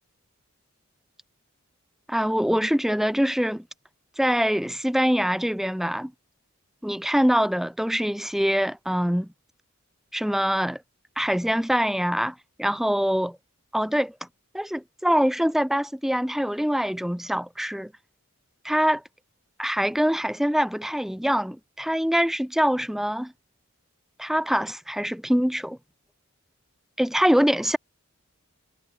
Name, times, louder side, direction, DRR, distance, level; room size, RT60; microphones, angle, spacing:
voice 1, 2.1-3.6 4.2-6.1 6.8-9.3 10.1-10.8 11.2-13.4 13.7-14.1 14.5-17.9 18.6-19.0 19.6-23.3 24.2-25.8 27.0-27.8, equal, ahead, 0.6 m, -24 dB
head